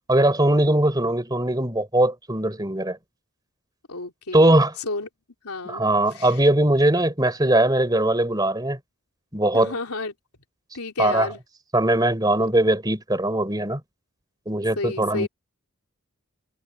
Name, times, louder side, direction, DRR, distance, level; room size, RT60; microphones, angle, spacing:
voice 1, 0.1-3.0 4.3-4.7 5.6-8.8 9.3-9.7 11.0-11.3 11.7-13.8 14.5-15.3, right 1 dB, 20° right, 3.9 m, -20 dB
voice 2, 3.9-5.1 5.4-5.8 6.1-6.5 9.5-10.1 10.7-11.4 14.7-15.3, left 3 dB, 85° left, 3.4 m, -31 dB
head